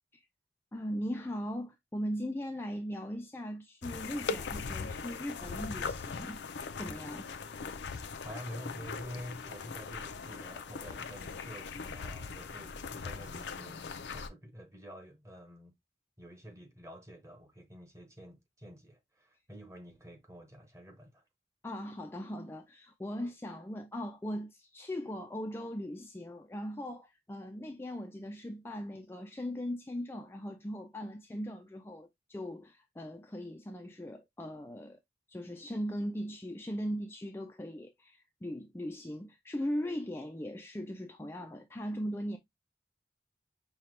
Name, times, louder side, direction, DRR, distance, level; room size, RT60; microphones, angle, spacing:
voice 1, 0.7-6.4 6.8-7.3 21.6-35.0 35.3-42.4, equal, 15° left, 0.4 m, -39 dB
sound 1, 3.8-14.3, left 5 dB, 85° left, 0.5 m, -40 dB
voice 2, 8.2-15.7 16.2-21.2, equal, 15° right, 1.1 m, -48 dB
5.6 x 2.3 x 3.2 m
head